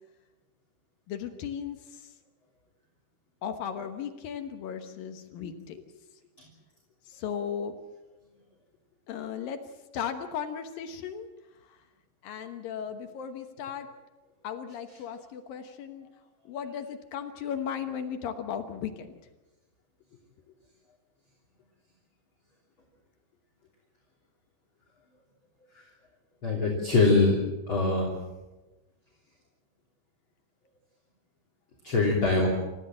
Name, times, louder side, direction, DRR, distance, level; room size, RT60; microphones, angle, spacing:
voice 1, 1.1-2.0 3.4-5.8 7.1-7.8 9.1-9.6 9.9-11.3 12.2-13.9 14.4-16.1 16.5-19.1, left 8 dB, 65° left, 7 dB, 2.7 m, -36 dB
voice 2, 26.4-27.4 27.7-28.1 31.8-32.5, left 3 dB, 30° left, -2 dB, 3.4 m, -23 dB
28.5 x 15.0 x 7.6 m, 1.1 s
omnidirectional pair, 4.9 m